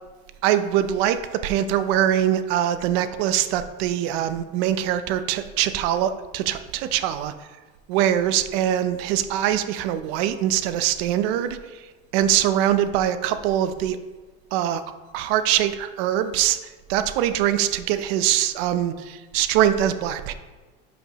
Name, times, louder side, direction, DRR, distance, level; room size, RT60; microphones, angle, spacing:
voice 1, 0.4-7.3 7.9-14.0 14.5-14.8 15.1-16.6 16.9-20.3, right 11 dB, 75° right, 11 dB, 0.7 m, -23 dB
11.5 x 5.2 x 3.0 m, 1.3 s
supercardioid pair, 115°, 31 cm